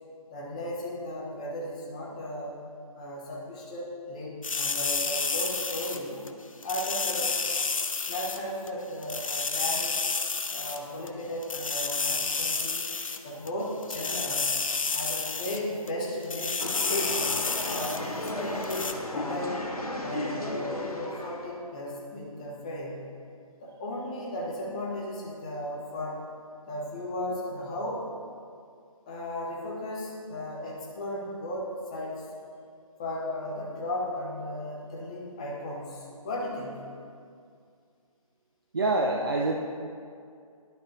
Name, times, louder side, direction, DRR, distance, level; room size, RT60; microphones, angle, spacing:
voice 1, 0.3-2.6 2.9-6.2 6.6-7.4 8.1-10.0 10.5-12.9 13.2-14.5 14.9-17.3 17.7-19.6 20.0-23.0 23.6-26.3 26.7-28.1 29.1-32.3 33.0-36.9, left 1 dB, 10° left, -4 dB, 0.5 m, -35 dB
sound 1, 4.4-6.3 6.6-8.4 8.7-8.8 9.0-10.8 11.1-11.2 11.4-13.5 13.8-15.6 15.9-16.0 16.2-18.0 18.3-18.4 18.6-18.9, left 4 dB, 65° left, 0.6 m, -30 dB
sound 2, 16.6-21.5, left 1 dB, 80° left, 1.0 m, -34 dB
voice 2, 38.7-39.5, right 2 dB, 40° right, 0 dB, 0.4 m, -25 dB
11.0 x 6.0 x 2.7 m, 2.3 s
figure-of-eight pair, 150°, 19 cm